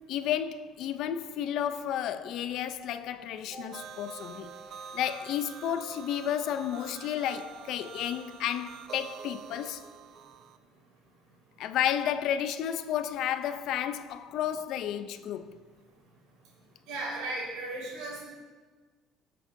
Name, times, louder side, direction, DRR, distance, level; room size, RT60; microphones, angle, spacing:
voice 1, 0.1-4.6 4.9-9.8 11.6-15.6, left 10 dB, 65° left, 0.5 m, -32 dB
sound 1, 3.7-10.6, right 7 dB, 50° right, 0.5 m, -46 dB
voice 2, 16.9-18.2, right 2 dB, 90° right, 3.4 m, -35 dB
17.0 x 7.6 x 2.6 m
cardioid pair, 145°, 0 cm